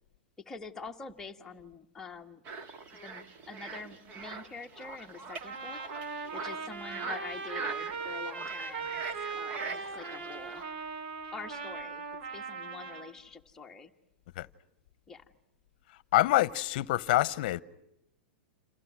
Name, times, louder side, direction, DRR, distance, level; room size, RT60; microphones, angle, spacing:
voice 1, 0.4-2.4 2.9-5.8 6.3-9.0 9.3-10.6 11.3-12.0 12.3-13.9 15.1-15.2, left 4 dB, 10° left, 1.5 m, -46 dB
sound 1, 2.4-10.6, right 4 dB, 25° right, 1.9 m, -42 dB
Trumpet, 5.4-13.1, right 5 dB, 55° right, 4.0 m, -39 dB
voice 2, 16.1-17.6, left 16 dB, 45° left, 1.1 m, -26 dB
29.0 x 28.5 x 6.3 m
supercardioid pair, 165°, 6 cm